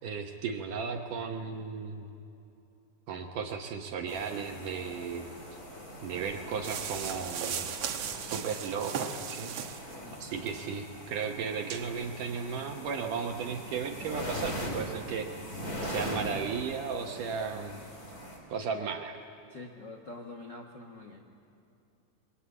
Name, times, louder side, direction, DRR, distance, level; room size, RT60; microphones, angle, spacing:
voice 1, 0.0-2.1 3.1-5.3 6.0-7.7 8.2-9.9 10.2-15.3 15.8-17.8 18.5-19.2, right 6 dB, 70° right, 3 dB, 2.1 m, -35 dB
sound 1, 4.1-18.4, equal, 20° left, 4.3 m, -41 dB
sound 2, 6.6-9.9 10.4-10.6 11.1-11.2 11.7-11.8, right 8 dB, 90° right, 1.4 m, -37 dB
voice 2, 10.0-10.3 19.5-21.2, left 2 dB, 75° left, 1 dB, 1.0 m, -45 dB
27.5 x 23.0 x 8.4 m, 2.7 s
omnidirectional pair, 5.0 m